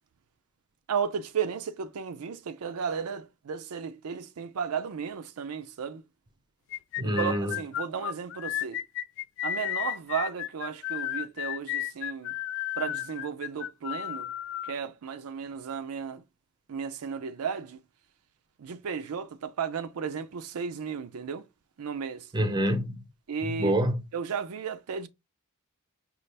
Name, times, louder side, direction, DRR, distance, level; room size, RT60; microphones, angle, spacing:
voice 1, 0.9-6.0 7.0-8.8 9.4-12.4 12.8-14.3 14.6-16.2 16.7-17.8 18.6-21.4 21.8-22.3 23.3-23.8 24.1-25.1, right 6 dB, 70° right, 0.4 m, -34 dB
sound 1, 6.7-14.7, left 12 dB, 60° left, 0.4 m, -33 dB
voice 2, 7.0-7.5 22.3-23.0 23.5-23.9, equal, 20° right, 0.6 m, -26 dB
5.3 x 2.4 x 3.2 m
head